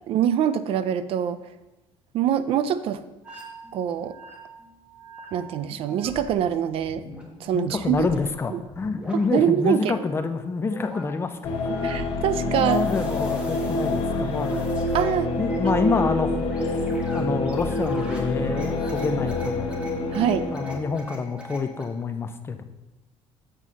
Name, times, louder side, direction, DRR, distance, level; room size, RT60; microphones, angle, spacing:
voice 1, 0.1-1.4 2.1-3.0 3.7-4.2 5.3-7.0 7.4-8.1 8.5-8.6 9.1-9.9 11.8-12.9 14.9-15.3 20.1-20.5, right 9 dB, 60° right, 13 dB, 0.4 m, -24 dB
sound 1, 3.2-6.3 6.7-9.2 9.6-21.8, left 1 dB, 10° right, 1.3 m, -43 dB
voice 2, 7.5-12.1 12.5-14.6 15.4-16.4 16.8-19.7 20.5-22.6, left 4 dB, 20° left, 8 dB, 0.5 m, -27 dB
sound 2, 11.4-20.8, left 2 dB, 65° left, 1.0 m, -26 dB
7.5 x 4.0 x 6.2 m, 1.0 s
cardioid pair, 145°, 11 cm